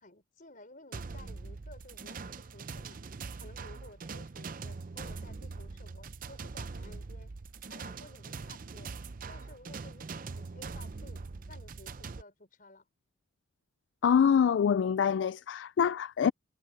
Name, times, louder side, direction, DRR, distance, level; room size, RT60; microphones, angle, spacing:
voice 1, 0.0-3.0 3.3-7.3 7.7-8.9 9.3-12.9, left 2 dB, 45° left, 5.0 m, -54 dB
sound 1, 0.9-12.2, right 4 dB, 45° right, 0.6 m, -42 dB
voice 2, 14.0-16.3, left 7 dB, 65° left, 0.3 m, -25 dB
head